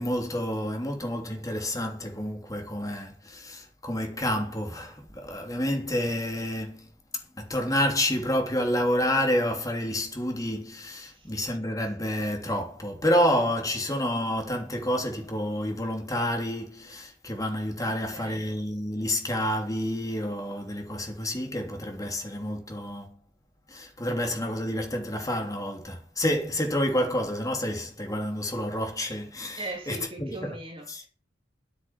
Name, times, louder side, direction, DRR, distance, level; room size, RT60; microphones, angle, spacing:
voice 1, 0.0-6.9 7.4-23.2 23.7-30.5 30.9-31.0, equal, 20° left, 3.2 m, -29 dB
voice 2, 11.0-11.3 17.9-18.4 29.6-31.1, right 2 dB, 30° right, 3.2 m, -40 dB
9.9 x 9.0 x 7.3 m
head